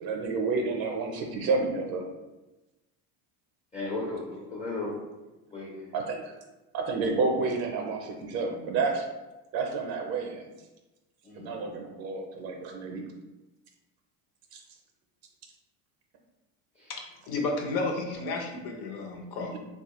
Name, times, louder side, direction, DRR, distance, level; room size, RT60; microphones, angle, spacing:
voice 1, 0.0-2.1 5.9-6.3 6.7-9.0 9.5-10.5 11.4-13.1 14.5-14.6, right 4 dB, 55° right, 2 dB, 0.5 m, -30 dB
voice 2, 3.7-5.0 5.5-5.9 11.2-11.6 16.8-16.9, left 2 dB, 15° left, -5 dB, 0.4 m, -35 dB
voice 3, 16.9-19.6, left 3 dB, 55° left, 1 dB, 0.7 m, -32 dB
3.0 x 2.3 x 2.8 m, 1.1 s
cardioid pair, 125°, 46 cm